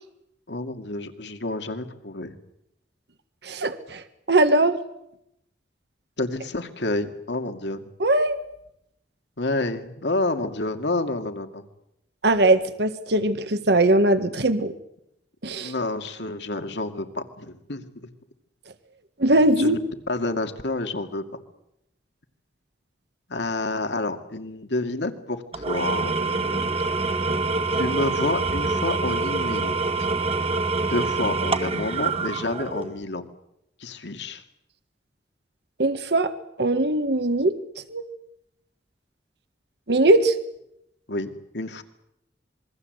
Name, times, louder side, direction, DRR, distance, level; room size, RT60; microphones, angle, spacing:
voice 1, 0.5-2.3 6.2-7.9 9.4-11.6 15.6-18.1 19.6-19.8 20.1-21.2 23.3-26.7 27.7-29.7 30.8-33.2 33.8-34.4 41.1-41.8, left 2 dB, 80° left, 7 dB, 2.4 m, -29 dB
voice 2, 3.4-4.0 4.3-4.8 8.0-8.4 12.2-14.7 15.4-15.7 19.2-19.8 35.8-36.3 36.6-37.5 37.9-38.0 39.9-40.3, right 2 dB, 65° right, 10 dB, 1.6 m, -20 dB
Engine / Tools, 25.5-33.0, right 3 dB, 35° right, 1.7 m, -26 dB
27.0 x 22.5 x 8.0 m, 0.81 s
head